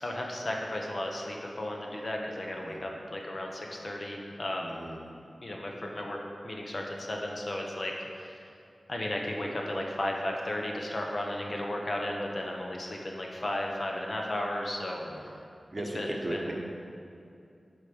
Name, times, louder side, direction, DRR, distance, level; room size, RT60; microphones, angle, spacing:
voice 1, 0.0-4.8 5.4-6.2 6.4-8.4 8.9-15.3 15.9-16.5, left 1 dB, 50° left, 0 dB, 1.0 m, -34 dB
voice 2, 4.6-5.0 15.0-15.3 15.7-16.5, right 1 dB, 40° right, 0 dB, 1.0 m, -37 dB
8.2 x 5.3 x 5.4 m, 2.6 s
wide cardioid pair, 80°, 0 cm